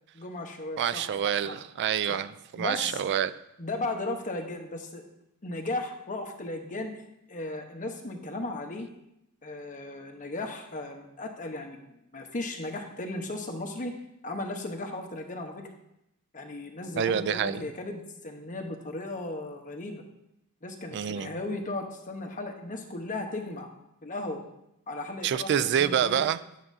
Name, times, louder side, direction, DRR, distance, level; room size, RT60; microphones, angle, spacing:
voice 1, 0.1-1.6 2.1-2.2 2.6-3.0 3.6-5.0 5.4-6.9 7.3-8.9 9.4-13.9 14.2-15.7 16.3-20.0 20.6-23.7 24.0-24.4 24.9-26.2, left 2 dB, 35° left, 4 dB, 1.0 m, -36 dB
voice 2, 0.8-3.3 17.0-17.6 20.9-21.3 25.2-26.4, right 9 dB, 50° right, 15 dB, 0.3 m, -27 dB
11.0 x 7.3 x 2.7 m, 0.84 s
head